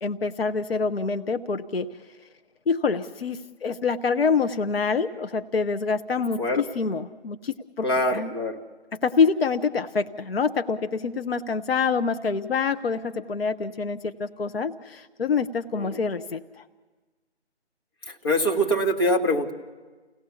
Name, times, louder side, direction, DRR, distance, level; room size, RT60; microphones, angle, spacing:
voice 1, 0.0-1.9 2.7-8.3 8.9-16.6, left 5 dB, 55° left, 8 dB, 0.9 m, -26 dB
voice 2, 7.8-8.6 15.7-16.0 18.1-19.5, equal, 20° left, 0 dB, 1.4 m, -24 dB
30.0 x 17.5 x 7.1 m, 1.4 s
figure-of-eight pair, 170°, 34 cm